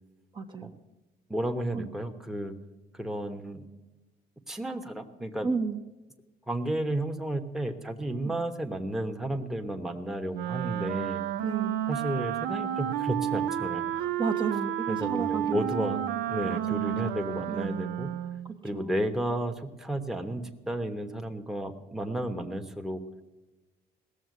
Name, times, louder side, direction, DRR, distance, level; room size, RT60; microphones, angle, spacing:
voice 1, 0.3-0.7 1.7-1.9 5.4-5.8 8.2-8.3 11.4-11.8 13.9-17.9 18.4-18.9, right 4 dB, 30° right, 5 dB, 1.0 m, -34 dB
voice 2, 1.3-2.6 2.9-3.6 4.5-5.5 6.5-11.2 11.9-13.8 14.9-16.0 16.3-18.1 18.6-23.0, right 1 dB, ahead, 4 dB, 1.0 m, -32 dB
Wind instrument woodwind instrument, 10.3-18.5, right 11 dB, 85° right, 0.6 m, -31 dB
17.5 x 7.1 x 9.4 m, 1.1 s
cardioid pair, 110°, 17 cm